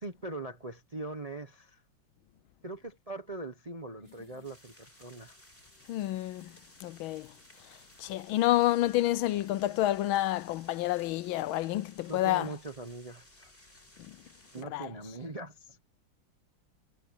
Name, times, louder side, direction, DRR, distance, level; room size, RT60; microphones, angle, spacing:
voice 1, 0.0-1.8 2.6-5.4 12.1-13.5 14.5-15.8, right 2 dB, 30° right, 0.7 m, -41 dB
sound 1, 4.0-8.7 9.0-9.6 9.9-10.0 12.7-13.1 13.4-13.9, right 3 dB, 80° right, 8.1 m, -69 dB
sound 2, 4.4-14.6, left 1 dB, 25° left, 7.1 m, -58 dB
voice 2, 5.9-6.5 6.8-7.3 8.0-12.5 14.7-14.9, left 15 dB, 75° left, 1.3 m, -29 dB
omnidirectional pair, 2.3 m